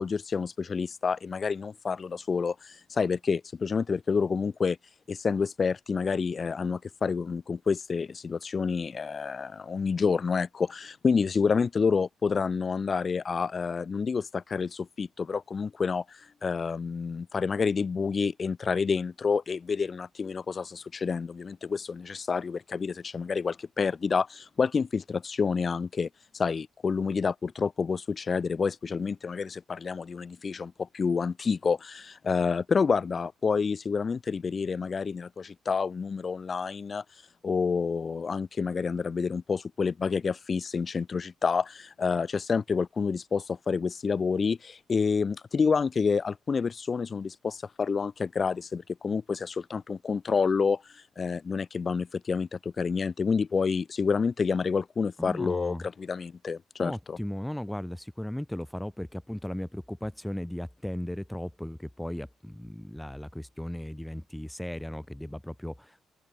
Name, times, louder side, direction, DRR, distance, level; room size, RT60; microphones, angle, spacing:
voice 1, 0.0-4.8 5.1-26.1 26.3-37.0 37.4-57.2, left 5 dB, 40° left, 0.9 m, -28 dB
voice 2, 55.2-55.9 56.8-66.1, left 1 dB, 5° left, 0.7 m, -36 dB
open air
cardioid pair, 90°, 0 cm